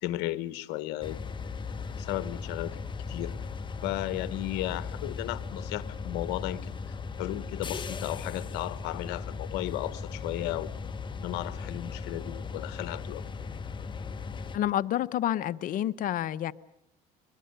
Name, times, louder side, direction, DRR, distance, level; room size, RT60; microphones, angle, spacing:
voice 1, 0.0-1.2 1.9-2.8 3.1-3.3 3.8-6.8 7.2-10.7 11.2-13.2, left 15 dB, 75° left, 15 dB, 1.2 m, -34 dB
sound 1, 1.0-14.6, left 5 dB, 25° left, 1.1 m, -37 dB
voice 2, 14.5-16.5, left 12 dB, 50° left, 15 dB, 0.7 m, -29 dB
23.0 x 22.0 x 6.7 m, 0.91 s
cardioid pair, 110°, 18 cm